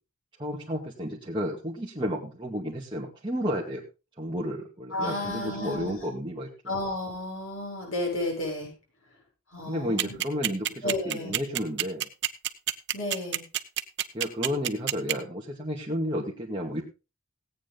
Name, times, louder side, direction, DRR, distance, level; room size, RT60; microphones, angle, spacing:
voice 1, 0.4-3.8 4.2-6.5 9.7-12.1 14.1-16.8, equal, 25° right, -4 dB, 2.1 m, -32 dB
voice 2, 4.9-6.1 6.7-8.7 9.5-10.2 10.8-11.4 12.9-13.4, left 2 dB, 80° left, 0 dB, 7.2 m, -32 dB
sound 1, 10.0-15.1, right 13 dB, 60° right, 1.0 m, -26 dB
17.5 x 8.9 x 4.0 m, 0.30 s
head